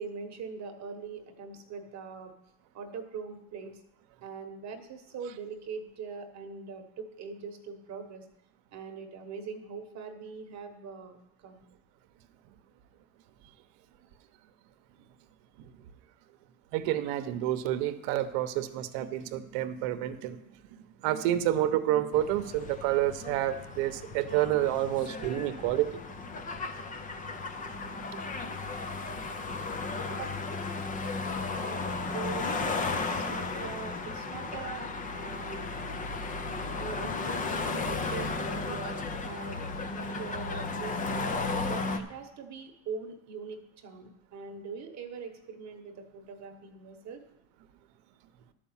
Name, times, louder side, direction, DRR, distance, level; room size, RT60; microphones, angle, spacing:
voice 1, 0.0-2.3 2.7-3.8 4.2-8.3 8.7-11.2 11.4-11.6 30.1-30.3 31.5-35.6 36.7-37.1 37.5-39.6 39.9-41.3 41.7-47.2, right 5 dB, 40° right, 6 dB, 1.2 m, -42 dB
voice 2, 16.7-20.4 21.0-26.0 28.1-28.2 29.1-29.2, right 13 dB, 65° right, 10 dB, 1.0 m, -29 dB
sound 1, 22.1-42.0, left 3 dB, 20° left, 0.6 m, -35 dB
11.5 x 5.1 x 7.2 m, 0.85 s
cardioid pair, 145°, 45 cm